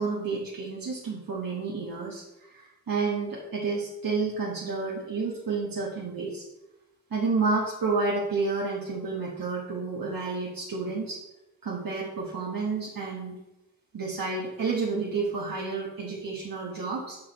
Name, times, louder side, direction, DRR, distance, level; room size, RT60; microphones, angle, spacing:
voice 1, 0.0-6.4 7.1-11.2 11.6-13.3 13.9-17.2, right 4 dB, 85° right, -4 dB, 1.2 m, -30 dB
7.3 x 5.8 x 4.0 m, 0.95 s
cardioid pair, 45°, 34 cm